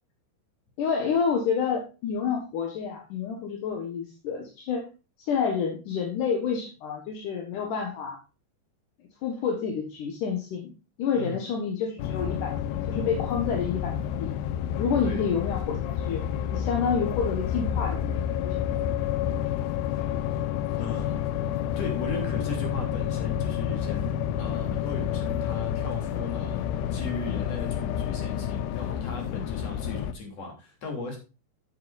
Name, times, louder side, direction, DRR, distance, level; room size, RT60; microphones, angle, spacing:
voice 1, 0.8-4.9 5.2-8.2 9.2-10.7 11.0-12.6 12.9-14.3 14.8-16.2 16.5-18.7, left 6 dB, 60° left, 2.3 m, -29 dB
sound 1, 12.0-30.1, left 9 dB, 85° left, 2.4 m, -29 dB
voice 2, 20.8-21.2 21.8-31.2, left 3 dB, 40° left, 3.7 m, -37 dB
12.5 x 7.7 x 2.6 m
omnidirectional pair, 5.3 m